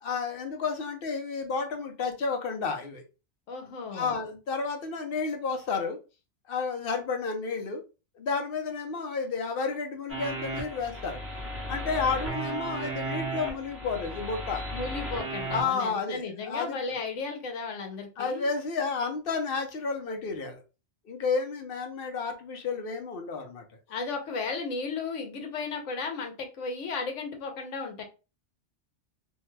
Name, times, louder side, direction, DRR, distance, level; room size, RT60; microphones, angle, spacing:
voice 1, 0.0-3.0 3.9-6.0 6.5-7.8 8.2-11.2 11.7-14.6 15.5-16.8 18.2-20.6 21.0-23.6, left 4 dB, 60° left, 4 dB, 0.7 m, -31 dB
voice 2, 3.5-4.2 14.7-18.5 23.9-28.0, left 4 dB, 90° left, 4 dB, 1.1 m, -34 dB
sound 1, 10.1-15.6, right 2 dB, 15° right, 0.7 m, -35 dB
2.7 x 2.2 x 3.1 m, 0.31 s
omnidirectional pair, 1.2 m